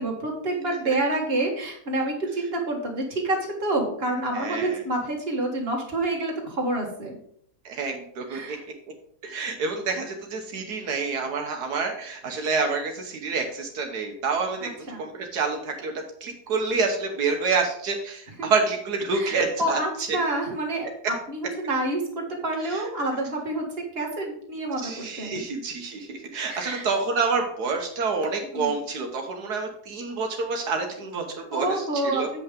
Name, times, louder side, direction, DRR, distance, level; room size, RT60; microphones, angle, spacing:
voice 1, 0.0-7.2 8.3-8.6 14.6-15.0 18.4-18.5 19.1-23.7 23.9-25.4 26.5-26.9 28.5-28.7 31.5-32.2, right 2 dB, 40° right, 0 dB, 2.0 m, -28 dB
voice 2, 4.3-4.8 7.6-8.6 9.2-14.7 15.0-19.8 20.1-20.2 22.7-22.8 24.8-32.3, right 4 dB, 80° right, 3 dB, 1.6 m, -28 dB
7.9 x 5.6 x 5.1 m, 0.65 s
omnidirectional pair, 1.7 m